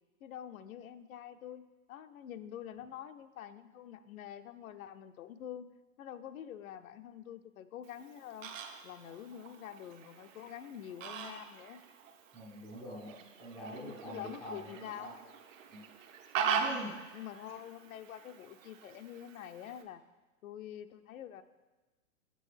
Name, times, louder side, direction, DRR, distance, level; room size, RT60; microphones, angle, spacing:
voice 1, 0.2-1.6 1.9-5.7 6.0-8.5 8.8-11.8 13.8-15.1 16.4-16.8 17.1-20.0 20.4-21.4, left 10 dB, 75° left, 11 dB, 0.5 m, -46 dB
Fowl, 7.8-19.8, right 7 dB, 65° right, 0.8 m, -41 dB
voice 2, 12.3-15.2 15.7-15.8 16.6-17.0, right 1 dB, ahead, -11 dB, 0.3 m, -45 dB
7.6 x 5.5 x 3.3 m, 1.2 s
hypercardioid pair, 135°, 42 cm